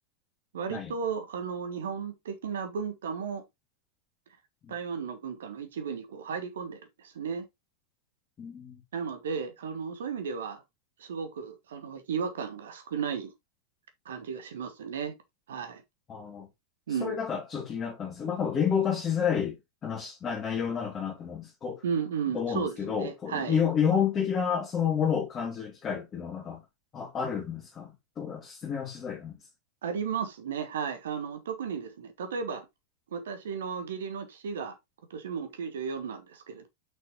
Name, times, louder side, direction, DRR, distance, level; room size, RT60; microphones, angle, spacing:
voice 1, 0.5-3.4 4.7-7.4 8.9-10.6 11.0-13.3 14.0-15.1 15.5-15.8 16.9-17.2 21.8-23.6 29.8-32.7 33.1-34.8 35.1-36.7, right 6 dB, 60° right, 1.3 m, -34 dB
voice 2, 8.4-8.8 16.1-16.5 17.0-19.6 19.8-21.8 22.3-26.6 26.9-29.4, left 7 dB, 25° left, 2.5 m, -30 dB
6.9 x 6.1 x 3.0 m
figure-of-eight pair, 90°, 0 cm